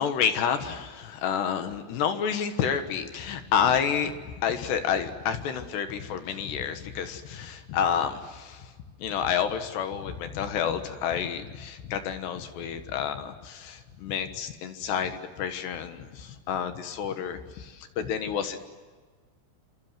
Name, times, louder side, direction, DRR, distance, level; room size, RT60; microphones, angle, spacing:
voice 1, 0.0-8.7 9.0-18.6, left 8 dB, 65° left, 8 dB, 3.3 m, -29 dB
27.5 x 27.0 x 7.7 m, 1.4 s
omnidirectional pair, 5.7 m